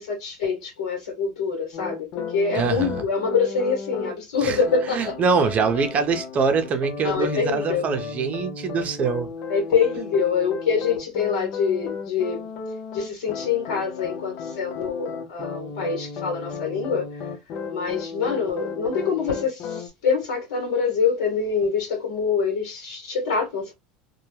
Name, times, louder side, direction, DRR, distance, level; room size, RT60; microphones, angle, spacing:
voice 1, 0.0-5.1 7.0-7.9 9.5-12.5 12.9-17.3 17.7-23.7, left 5 dB, 85° left, 1.0 m, -25 dB
sound 1, 1.7-4.1 4.6-19.9, left 5 dB, 55° left, 0.5 m, -34 dB
voice 2, 2.5-3.0 4.4-4.6 4.9-9.3, right 5 dB, 35° right, 0.6 m, -24 dB
2.2 x 2.1 x 3.1 m
supercardioid pair, 105°, 4 cm